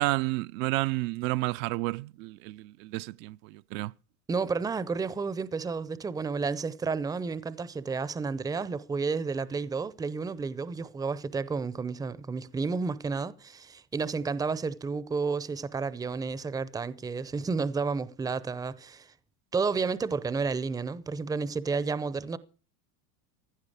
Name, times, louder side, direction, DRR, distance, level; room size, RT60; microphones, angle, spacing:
voice 1, 0.0-3.9, right 20 dB, 60° right, 0.6 m, -31 dB
voice 2, 4.3-19.1 19.5-22.4, right 4 dB, 10° right, 0.6 m, -31 dB
15.5 x 11.5 x 4.9 m
supercardioid pair, 115°, 47 cm